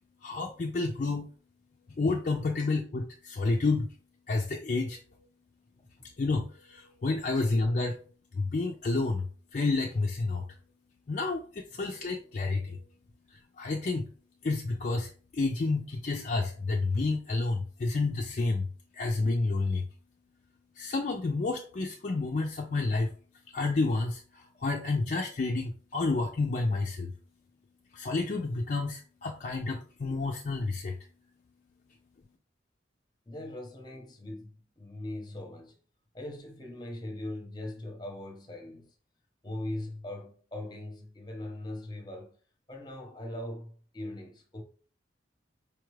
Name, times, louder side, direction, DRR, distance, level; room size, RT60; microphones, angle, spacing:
voice 1, 0.2-1.3 1.9-3.9 4.3-5.0 6.0-8.0 8.3-10.5 11.1-12.8 13.3-14.1 14.4-18.7 18.9-19.9 20.7-23.2 23.5-27.1 27.9-31.0, left 3 dB, 40° left, 0.4 m, -30 dB
voice 2, 33.3-35.8 36.1-38.9 39.4-42.3 42.7-44.6, left 1 dB, 25° left, 0.8 m, -40 dB
4.9 x 2.4 x 3.1 m
head